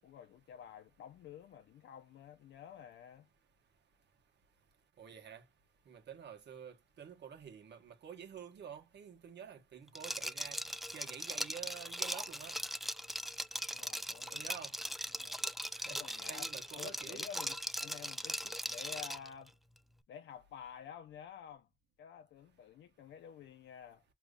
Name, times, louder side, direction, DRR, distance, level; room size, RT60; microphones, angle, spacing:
voice 1, 0.0-3.3 13.7-14.5 15.1-15.4 15.9-19.5 20.1-21.7 22.0-24.0, left 8 dB, 70° left, 0.6 m, -51 dB
voice 2, 5.0-5.4 5.9-10.6 10.9-12.6 14.3-14.7 15.7-17.2, right 8 dB, 60° right, 1.3 m, -49 dB
Liquid, 10.0-19.3, equal, ahead, 0.4 m, -40 dB
5.1 x 3.1 x 2.3 m
cardioid pair, 90°, 20 cm